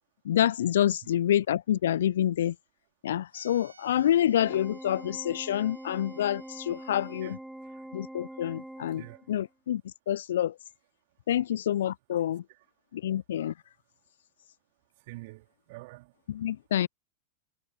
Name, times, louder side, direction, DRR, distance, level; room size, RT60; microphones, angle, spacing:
voice 1, 0.3-2.5 3.0-7.4 7.9-9.0 9.3-9.8 10.1-10.5 11.3-12.4 12.9-13.5 16.3-16.9, left 11 dB, 65° left, 0.3 m, -27 dB
sound 1, 3.3-7.4, right 4 dB, 80° right, 1.6 m, -58 dB
Organ, 4.4-9.4, right 1 dB, 5° right, 0.5 m, -44 dB
voice 2, 7.2-7.9 8.9-9.3 12.5-12.7 15.0-16.2, right 23 dB, 55° right, 3.8 m, -48 dB
figure-of-eight pair, 90°, 0 cm